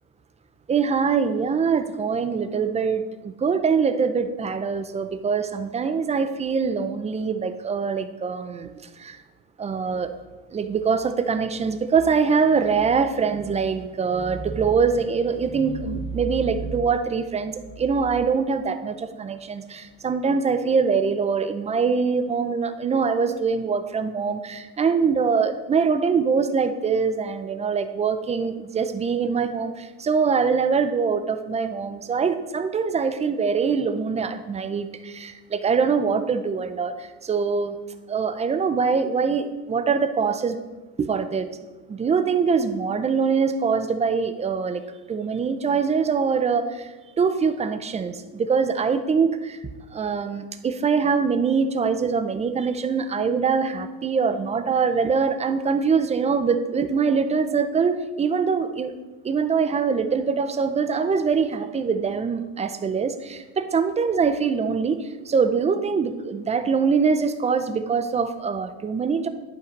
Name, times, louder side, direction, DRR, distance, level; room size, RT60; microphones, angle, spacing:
voice 1, 0.7-8.7 9.0-9.2 9.6-10.1 10.5-37.8 38.1-40.6 41.0-41.5 41.9-44.8 45.1-46.9 47.2-49.6 49.9-58.9 59.2-69.3, right 5 dB, 15° right, 10 dB, 0.5 m, -23 dB
11.0 x 5.7 x 5.2 m, 1.2 s
cardioid pair, 135°, 40 cm